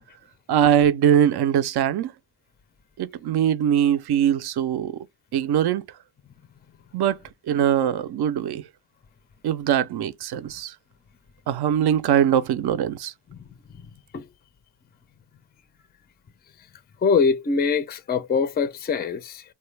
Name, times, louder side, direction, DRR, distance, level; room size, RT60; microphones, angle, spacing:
voice 1, 0.5-2.1 3.0-5.0 5.3-5.8 6.9-7.2 7.5-8.6 9.4-10.7 11.5-13.1, right 9 dB, 60° right, 0.5 m, -21 dB
voice 2, 17.0-19.4, left 5 dB, 25° left, 0.4 m, -23 dB
3.1 x 2.2 x 3.1 m
cardioid pair, 105°, 44 cm